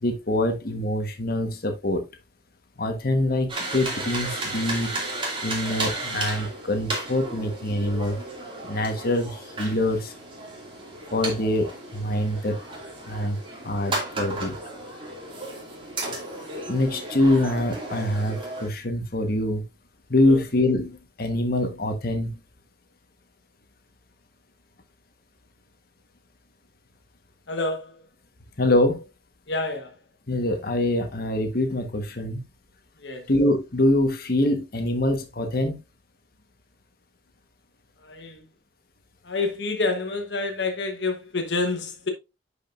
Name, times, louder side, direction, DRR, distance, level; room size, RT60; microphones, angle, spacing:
voice 1, 0.0-2.0 2.8-5.0 5.4-8.2 8.6-10.1 11.1-12.6 13.0-13.4 13.6-14.5 16.7-19.6 20.1-22.4 28.6-29.0 30.3-32.4 33.3-35.8, left 1 dB, 55° left, 1.3 m, -24 dB
sound 1, 3.5-18.7, right 2 dB, 30° right, 2.4 m, -34 dB
voice 2, 27.5-28.0 29.5-29.9 33.0-33.3 38.0-38.4 39.2-42.1, left 3 dB, 75° left, 1.2 m, -28 dB
10.5 x 5.1 x 2.5 m
head